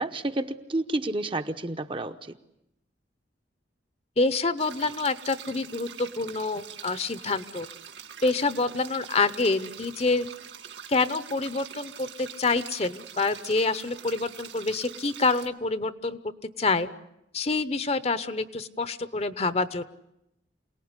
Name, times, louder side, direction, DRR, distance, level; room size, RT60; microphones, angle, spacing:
voice 1, 0.0-2.1, right 2 dB, 30° right, 8 dB, 0.9 m, -30 dB
voice 2, 4.2-7.7 8.2-10.3 10.9-16.2 16.6-16.9 17.3-19.8, left 3 dB, 35° left, 13 dB, 0.9 m, -27 dB
sound 1, 4.6-15.5, right 8 dB, 80° right, 1.9 m, -44 dB
27.5 x 18.5 x 9.8 m, 0.84 s
head